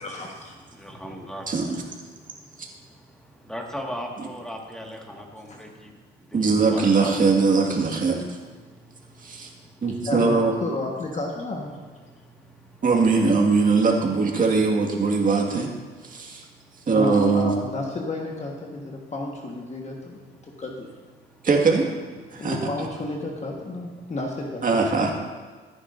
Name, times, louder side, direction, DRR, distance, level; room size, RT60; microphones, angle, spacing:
voice 1, 0.0-0.5 5.5-5.6 10.0-11.8 16.9-19.9 20.3-20.9 22.4-24.8, left 2 dB, 35° left, 0 dB, 1.4 m, -32 dB
voice 2, 0.7-1.5 2.2-2.4 2.8-6.0 6.3-7.1 7.5-7.6 8.7-9.8 12.1-12.6 22.3-22.4, equal, 5° left, 0 dB, 1.8 m, -39 dB
voice 3, 1.5-1.8 2.6-2.7 4.2-4.3 6.3-8.4 9.2-9.5 9.8-10.5 12.8-15.7 16.0-16.4 16.9-17.5 21.4-21.9 22.3-22.6 24.6-25.1, right 4 dB, 40° right, 1 dB, 1.9 m, -21 dB
14.5 x 9.6 x 2.6 m, 1.4 s
cardioid pair, 90°, 20 cm